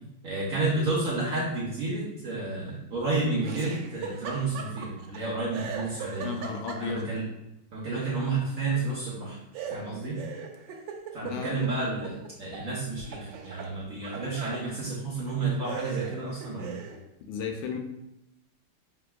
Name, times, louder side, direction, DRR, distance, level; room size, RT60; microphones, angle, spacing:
voice 1, 0.2-6.3 6.8-7.2 7.7-9.4 9.7-10.2 11.1-16.8, right 3 dB, 60° right, -5 dB, 1.0 m, -31 dB
Laughter, 3.4-5.2 5.5-7.2 9.5-12.7 13.0-14.7 15.2-15.3 15.6-17.0, right 6 dB, 75° right, 1.2 m, -39 dB
voice 2, 6.2-7.1 11.2-11.9 17.3-17.8, left 5 dB, 80° left, 3 dB, 1.4 m, -34 dB
5.8 x 2.9 x 2.3 m, 0.88 s
omnidirectional pair, 2.2 m